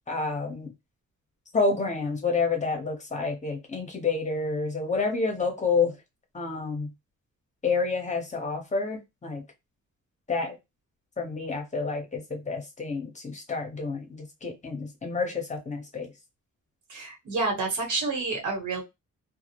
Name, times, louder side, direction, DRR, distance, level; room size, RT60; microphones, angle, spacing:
voice 1, 0.1-0.7 1.5-6.0 6.3-6.9 7.6-9.4 10.3-10.6 11.2-16.1, left 4 dB, 25° left, 0.9 m, -29 dB
voice 2, 16.9-18.8, right 3 dB, 70° right, 1.3 m, -29 dB
2.3 x 2.1 x 2.8 m
wide cardioid pair, 125°, 31 cm